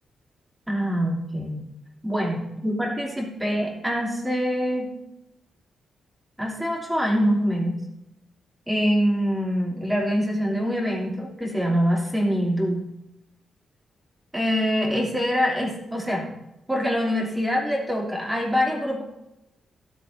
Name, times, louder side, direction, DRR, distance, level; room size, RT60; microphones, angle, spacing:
voice 1, 0.7-1.6 2.0-4.9 6.4-7.8 8.7-12.9 14.3-16.3 16.7-19.0, equal, 10° right, -4 dB, 3.3 m, -24 dB
16.5 x 8.2 x 2.8 m, 0.88 s
wide cardioid pair, 155°, 0 cm